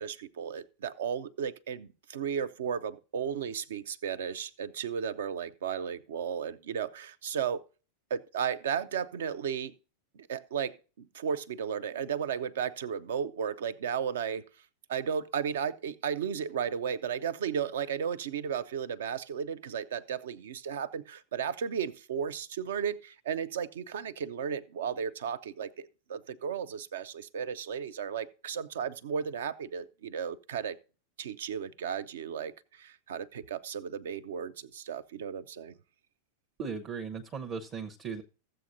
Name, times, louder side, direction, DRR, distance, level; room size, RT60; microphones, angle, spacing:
voice 1, 0.0-7.6 8.1-9.7 10.1-14.4 14.9-30.8 31.2-35.7, right 7 dB, 60° right, 0.6 m, -34 dB
voice 2, 36.6-38.2, right 5 dB, 30° right, 0.9 m, -37 dB
15.0 x 7.7 x 2.6 m
figure-of-eight pair, 90°, 0 cm